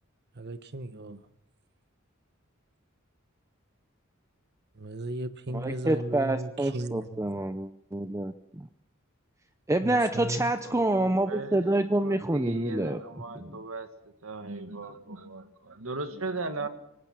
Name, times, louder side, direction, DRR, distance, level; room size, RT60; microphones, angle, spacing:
voice 1, 0.3-1.2 4.7-7.2 9.8-10.5, right 2 dB, 55° right, 11 dB, 1.1 m, -36 dB
voice 2, 5.5-8.7 9.7-13.0 13.3-13.5, right 1 dB, 15° right, 9 dB, 0.7 m, -27 dB
voice 3, 10.7-11.7 12.0-13.9 14.2-16.7, right 3 dB, 80° right, 7 dB, 2.1 m, -37 dB
25.0 x 18.5 x 6.2 m, 0.83 s
head